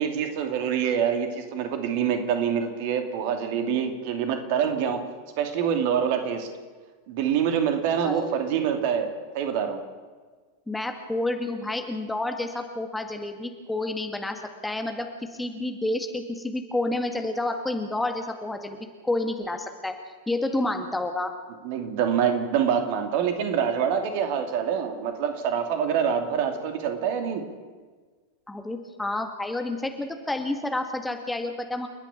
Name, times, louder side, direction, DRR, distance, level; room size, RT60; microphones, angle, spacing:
voice 1, 0.0-5.0 5.4-6.5 7.1-9.8 21.6-27.4, right 8 dB, 45° right, 6 dB, 2.6 m, -26 dB
voice 2, 8.0-8.5 10.7-18.8 19.0-19.9 20.3-21.3 28.5-31.9, left 2 dB, 5° left, 5 dB, 2.0 m, -29 dB
29.5 x 10.5 x 8.7 m, 1.4 s
figure-of-eight pair, 90°, 0 cm